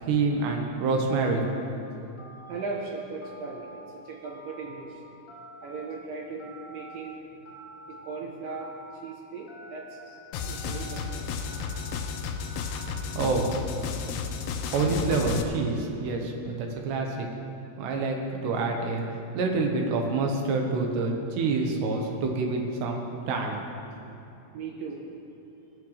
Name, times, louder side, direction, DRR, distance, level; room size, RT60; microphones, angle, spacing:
voice 1, 0.0-1.5 13.2-13.6 14.7-17.3 17.8-19.0 19.3-23.6, right 3 dB, 90° right, 2 dB, 3.5 m, -27 dB
Telephone, 1.1-1.6 2.2-2.7 3.2-3.8 4.2-4.8 5.3-5.8 6.4-7.0 7.4-8.0 8.4-8.9 9.5-10.0 10.4-11.0 11.4-11.9 12.4-13.0, right 1 dB, 35° left, 1.3 m, -47 dB
voice 2, 2.5-5.0 5.6-7.2 7.9-11.3 24.5-25.0, right 4 dB, 70° right, -1 dB, 2.3 m, -38 dB
sound 1, 10.3-15.4, left 6 dB, 80° left, 2.7 m, -33 dB
18.0 x 12.5 x 3.3 m, 2.7 s
omnidirectional pair, 4.7 m